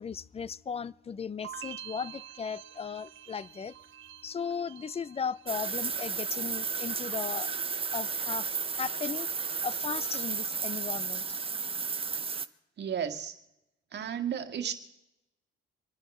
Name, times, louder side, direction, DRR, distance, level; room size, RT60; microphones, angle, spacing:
voice 1, 0.0-3.8 4.2-7.6 7.9-8.5 8.7-11.4, left 6 dB, 30° left, 21 dB, 0.5 m, -37 dB
sound 1, 1.4-6.5 6.8-7.4, right 12 dB, 75° right, 0.7 m, -48 dB
sound 2, 5.5-12.5, right 5 dB, 30° right, 0.8 m, -33 dB
voice 2, 12.8-13.3 13.9-14.7, right 8 dB, 60° right, 6 dB, 1.9 m, -33 dB
25.5 x 9.8 x 5.5 m, 0.89 s
cardioid pair, 90°, 20 cm